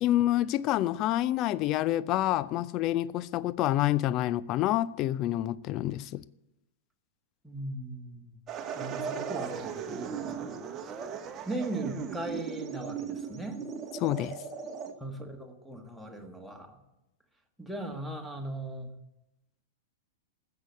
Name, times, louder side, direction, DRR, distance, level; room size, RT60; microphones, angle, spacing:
voice 1, 0.0-6.2 14.0-14.4, left 14 dB, 35° left, 0.4 m, -28 dB
voice 2, 7.4-8.4 8.7-10.5 10.8-10.9 11.4-13.6 15.0-16.8 17.6-18.9, right 1 dB, ahead, 1.6 m, -38 dB
sound 1, 8.5-14.9, right 6 dB, 25° right, 1.0 m, -37 dB
13.5 x 7.8 x 7.7 m
figure-of-eight pair, 100°, 0 cm